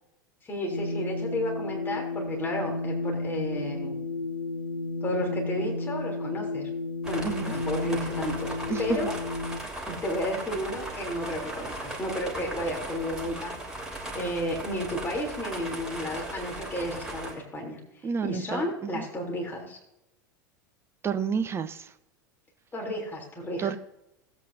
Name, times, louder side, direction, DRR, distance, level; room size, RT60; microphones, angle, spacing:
voice 1, 0.4-4.0 5.0-6.7 7.0-9.2 9.9-13.5 14.1-19.8 22.7-23.7, left 1 dB, 20° left, 0 dB, 3.3 m, -32 dB
sound 1, 0.7-9.6, left 2 dB, 85° left, 1.2 m, -32 dB
sound 2, 7.0-17.3, right 1 dB, 5° right, 3.0 m, -38 dB
voice 2, 18.0-19.0 21.0-21.9 23.6-23.8, right 6 dB, 25° right, 11 dB, 0.8 m, -30 dB
17.5 x 8.3 x 2.7 m, 0.89 s
figure-of-eight pair, 85°, 11 cm